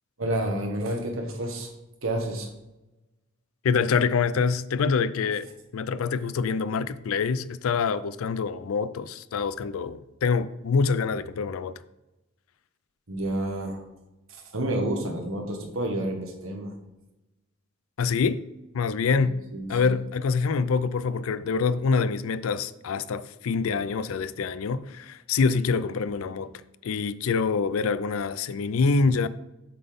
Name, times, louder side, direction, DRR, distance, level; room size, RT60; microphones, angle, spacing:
voice 1, 0.2-1.7 2.0-2.5 13.1-13.8 14.3-16.7 19.5-19.9, right 1 dB, 75° right, 1.5 m, -29 dB
voice 2, 3.6-5.5 5.7-11.8 18.0-18.4 18.7-19.4 19.7-26.5 26.8-29.3, left 5 dB, 80° left, 0.4 m, -25 dB
7.5 x 3.9 x 5.2 m
head